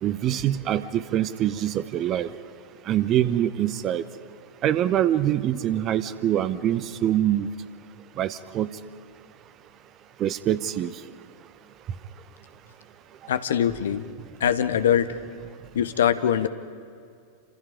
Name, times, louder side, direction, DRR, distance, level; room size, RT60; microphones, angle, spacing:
voice 1, 0.0-2.3 2.9-4.0 4.6-7.5 8.2-8.7 10.2-10.9, right 11 dB, 35° right, 15 dB, 1.0 m, -24 dB
voice 2, 13.3-14.1 14.4-15.2 15.7-16.5, left 9 dB, 60° left, 12 dB, 1.1 m, -22 dB
28.0 x 26.5 x 5.3 m, 2.3 s
figure-of-eight pair, 90°, 0 cm